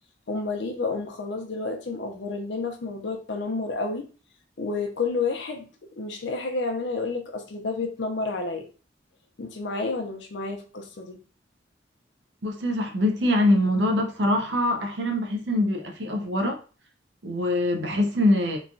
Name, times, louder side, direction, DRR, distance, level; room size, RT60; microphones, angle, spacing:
voice 1, 0.3-4.1 4.6-5.7 6.0-8.6 9.4-11.2, left 3 dB, 70° left, 0.6 m, -30 dB
voice 2, 12.4-16.6 17.2-18.6, left 1 dB, 70° right, 0.6 m, -23 dB
3.0 x 2.3 x 2.6 m
head